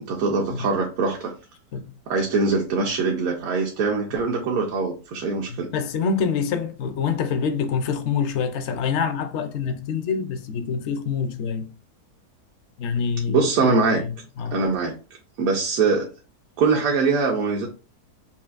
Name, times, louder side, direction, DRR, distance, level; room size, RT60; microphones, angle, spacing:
voice 1, 0.1-1.3 2.1-5.7 13.3-14.0 14.5-14.9 15.4-16.1 16.6-17.7, right 4 dB, 65° right, 1.1 m, -22 dB
voice 2, 5.5-11.7 12.8-14.6, left 6 dB, 65° left, 0.7 m, -26 dB
5.7 x 2.5 x 2.4 m
omnidirectional pair, 1.7 m